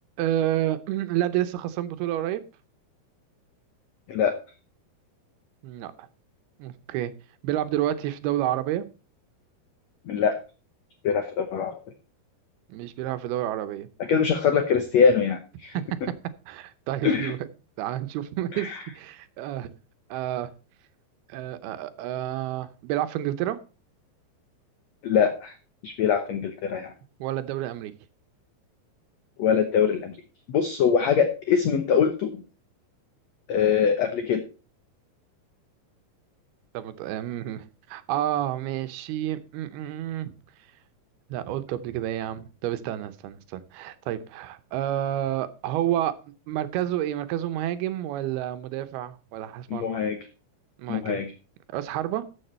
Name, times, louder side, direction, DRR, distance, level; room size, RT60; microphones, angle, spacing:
voice 1, 0.2-2.4 5.6-6.1 6.6-7.1 7.4-8.9 12.7-13.9 15.7-15.8 16.5-17.4 17.8-19.7 20.1-20.5 21.3-23.6 27.2-27.9 36.7-40.3 41.3-46.1 46.5-50.0 50.8-51.2 51.7-52.2, right 12 dB, 85° right, 2.8 m, -29 dB
voice 2, 10.1-10.4 11.0-11.8 14.1-15.7 17.0-17.3 18.5-18.8 25.0-25.5 25.8-26.9 29.4-30.2 30.5-32.4 33.5-34.4 49.7-50.2 50.9-51.3, left 7 dB, 85° left, 1.5 m, -23 dB
13.5 x 7.1 x 4.3 m
omnidirectional pair, 4.4 m